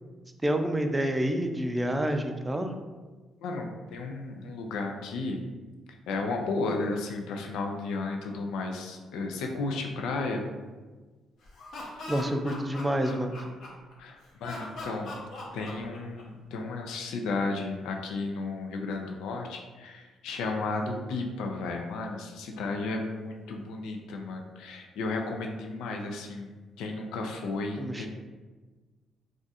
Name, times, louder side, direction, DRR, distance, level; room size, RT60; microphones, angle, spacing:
voice 1, 0.4-2.7 12.1-13.4 27.8-28.1, right 1 dB, 15° right, 5 dB, 0.4 m, -28 dB
voice 2, 3.4-5.4 6.1-10.4 14.0-15.1 15.5-28.1, left 3 dB, 90° left, 3 dB, 0.4 m, -33 dB
Laughter, 11.4-13.9 14.4-16.4, left 2 dB, 70° left, 0.8 m, -40 dB
2.4 x 2.4 x 4.0 m, 1.3 s
cardioid pair, 90°, 0 cm